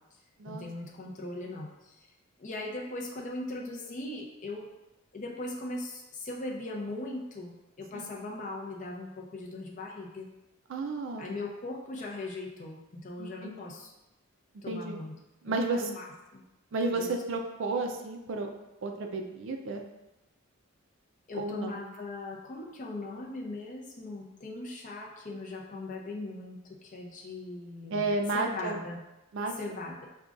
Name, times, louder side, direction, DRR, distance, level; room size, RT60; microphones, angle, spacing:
voice 1, 0.4-2.1 2.4-4.7 5.1-10.3 11.2-13.9 14.6-15.1 15.5-16.4 16.9-17.2 21.3-29.0 29.6-30.1, left 2 dB, 35° left, -1 dB, 0.5 m, -39 dB
voice 2, 10.7-11.3 13.2-13.8 14.7-15.0 15.4-15.9 16.7-18.5 18.8-19.8 21.3-21.8 27.9-28.8 29.3-29.5, right 3 dB, 60° right, 4 dB, 0.4 m, -32 dB
5.0 x 2.2 x 2.4 m, 0.97 s
head